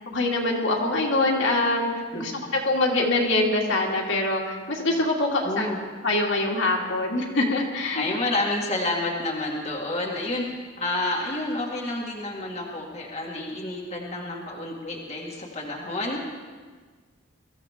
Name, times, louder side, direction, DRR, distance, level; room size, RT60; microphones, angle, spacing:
voice 1, 0.1-5.7 6.0-8.1, left 2 dB, 65° left, -2 dB, 2.5 m, -24 dB
voice 2, 5.4-5.8 8.0-10.4 10.8-16.2, left 2 dB, 30° left, -3 dB, 1.9 m, -29 dB
23.0 x 15.0 x 3.6 m, 1.5 s
head